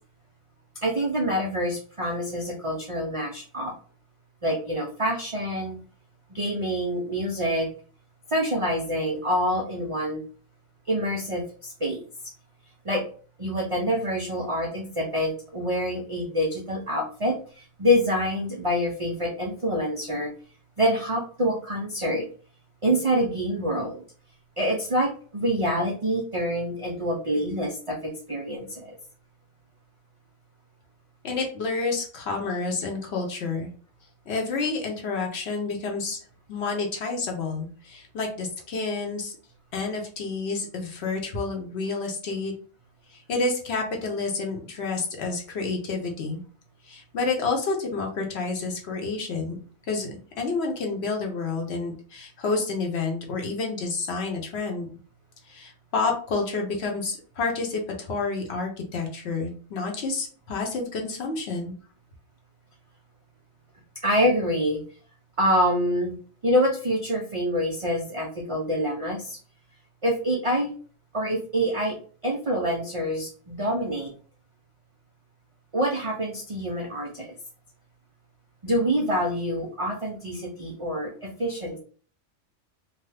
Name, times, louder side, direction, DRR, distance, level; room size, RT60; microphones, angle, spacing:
voice 1, 0.8-3.7 4.4-5.8 6.3-7.7 8.3-10.2 10.9-12.0 12.8-13.1 13.4-20.3 20.8-22.3 22.8-24.0 24.6-28.9 64.0-64.8 65.4-66.2 66.4-69.4 70.0-70.7 71.1-72.0 72.2-74.1 75.7-77.4 78.6-81.8, equal, 55° right, 0 dB, 0.3 m, -26 dB
voice 2, 31.2-33.7 34.3-36.2 36.5-39.4 39.7-42.5 43.1-46.4 46.8-49.6 49.9-54.9 55.5-61.7, left 3 dB, 65° left, 2 dB, 1.0 m, -29 dB
2.7 x 2.2 x 3.2 m, 0.41 s
omnidirectional pair, 1.2 m